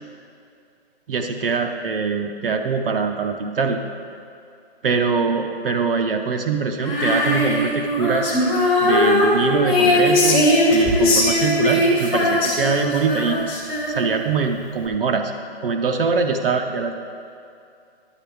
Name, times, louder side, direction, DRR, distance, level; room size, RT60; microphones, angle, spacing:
voice 1, 1.1-3.8 4.8-8.3 8.8-13.4 13.9-15.3 15.6-16.9, right 5 dB, 60° right, 4 dB, 0.7 m, -23 dB
Female singing, 6.8-14.3, left 1 dB, 10° left, 0.5 m, -19 dB
10.0 x 7.2 x 3.4 m, 2.5 s
hypercardioid pair, 155°, 32 cm